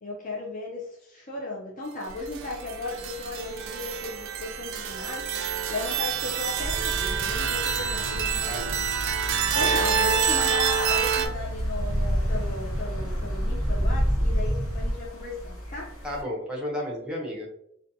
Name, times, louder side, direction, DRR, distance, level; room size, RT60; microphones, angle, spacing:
voice 1, 0.0-15.9, left 2 dB, 40° left, -4 dB, 0.4 m, -36 dB
sound 1, 2.1-16.2, equal, 80° left, 0.8 m, -39 dB
sound 2, 2.4-11.3, right 7 dB, 65° right, 0.3 m, -27 dB
sound 3, 6.6-14.9, equal, 20° left, 1.1 m, -29 dB
voice 2, 16.0-17.5, left 1 dB, 5° right, -3 dB, 0.6 m, -33 dB
2.5 x 2.2 x 2.6 m, 0.73 s
head